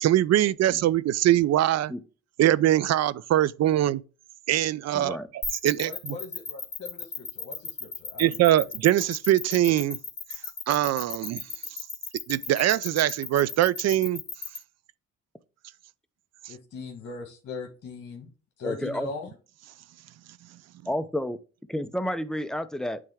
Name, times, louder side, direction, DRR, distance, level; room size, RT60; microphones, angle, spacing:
voice 1, 0.0-1.9 2.4-4.0 4.5-6.1 8.2-10.0 10.7-11.4 12.3-14.2, right 13 dB, 60° right, 0.4 m, -23 dB
voice 2, 4.9-5.3 18.6-19.1 20.9-21.4 21.7-23.0, left 1 dB, ahead, 0.5 m, -30 dB
sound 1, 5.4-14.6, left 5 dB, 35° left, 2.1 m, -35 dB
voice 3, 5.8-8.4 16.5-18.3 18.6-19.3, left 4 dB, 55° left, 1.4 m, -40 dB
8.2 x 3.5 x 3.5 m
cardioid pair, 90°, 30 cm